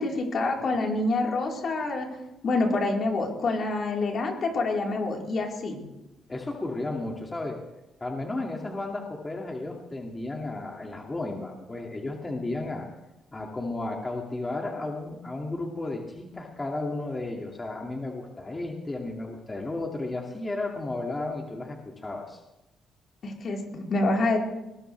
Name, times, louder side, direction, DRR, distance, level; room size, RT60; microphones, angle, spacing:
voice 1, 0.0-2.1 2.4-5.8 23.2-24.4, left 2 dB, 55° left, -1 dB, 4.2 m, -27 dB
voice 2, 6.3-7.6 8.0-12.9 13.3-22.4, left 2 dB, 20° left, 0 dB, 2.3 m, -33 dB
20.5 x 19.5 x 3.4 m, 0.97 s
cardioid pair, 90°, 0 cm